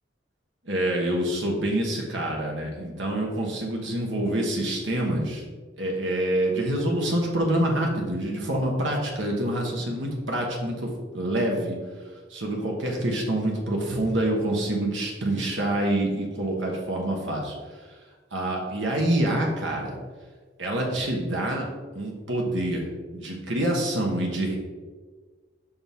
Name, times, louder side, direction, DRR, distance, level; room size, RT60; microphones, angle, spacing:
voice 1, 0.6-5.4 5.8-11.8 12.3-17.5 18.3-20.0 20.6-21.7 21.9-22.8 23.1-24.6, right 1 dB, 85° right, 0 dB, 1.4 m, -26 dB
7.0 x 5.4 x 3.6 m, 1.4 s
head